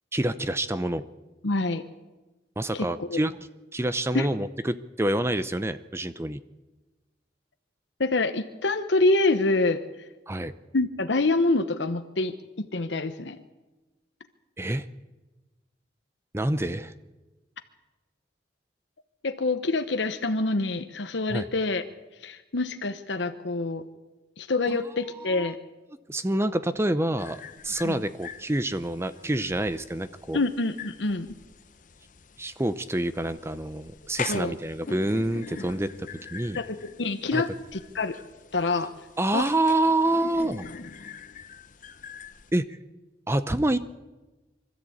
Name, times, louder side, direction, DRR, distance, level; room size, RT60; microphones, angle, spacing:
voice 1, 0.1-1.0 2.6-3.4 3.7-6.4 10.3-10.5 14.6-14.9 16.3-16.9 21.3-21.4 24.7-24.8 25.3-25.5 26.1-30.4 32.4-36.6 37.3-37.4 39.2-40.7 42.5-42.8 43.3-43.8, right 1 dB, 15° right, 12 dB, 0.6 m, -27 dB
voice 2, 1.4-1.8 2.7-3.2 4.1-4.3 8.0-9.8 10.7-13.4 19.2-21.8 22.2-23.9 24.4-25.6 27.8-28.0 30.3-31.3 34.3-34.5 36.6-38.2 38.5-38.9 39.3-39.5, left 2 dB, 70° left, 8 dB, 1.0 m, -26 dB
sound 1, 27.2-42.5, left 5 dB, 45° left, 0.9 m, -43 dB
24.5 x 13.5 x 8.5 m, 1.1 s
head